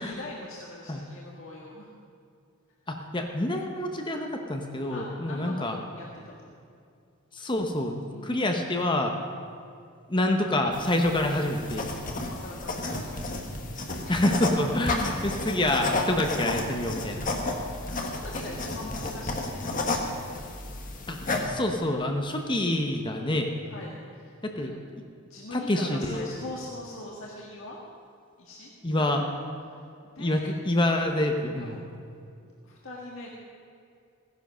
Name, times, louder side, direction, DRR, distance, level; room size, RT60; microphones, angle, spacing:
voice 1, 0.0-1.9 4.9-6.5 8.1-8.5 12.2-13.1 14.5-14.7 17.9-20.1 23.7-24.8 25.2-27.8 28.4-29.1 29.7-30.5 31.6-31.9 32.4-33.3, left 2 dB, 65° left, -3 dB, 1.7 m, -42 dB
voice 2, 2.9-5.8 7.3-9.1 10.1-11.9 14.1-17.3 21.1-21.2 21.4-23.5 24.4-24.7 25.5-26.3 28.8-29.2 30.2-31.8, left 1 dB, 20° left, 3 dB, 0.9 m, -27 dB
sound 1, 10.7-21.4, left 2 dB, 40° left, 1.5 m, -32 dB
16.0 x 10.5 x 6.3 m, 2.4 s
head